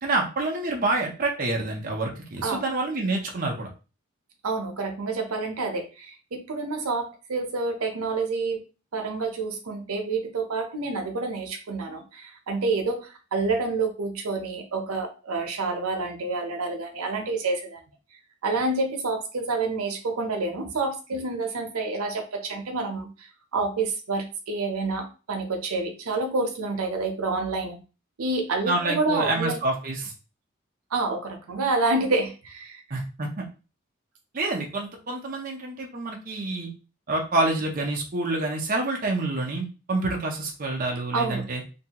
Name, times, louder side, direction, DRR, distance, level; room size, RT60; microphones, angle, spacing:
voice 1, 0.0-3.7 28.7-30.1 32.9-33.4 34.3-36.7 37.1-41.6, right 2 dB, 40° right, 0 dB, 0.5 m, -27 dB
voice 2, 4.4-8.6 8.9-17.8 18.4-27.8 28.2-29.6 30.9-32.8 41.1-41.4, right 3 dB, 90° right, 4 dB, 0.6 m, -28 dB
2.6 x 2.2 x 2.8 m, 0.33 s
head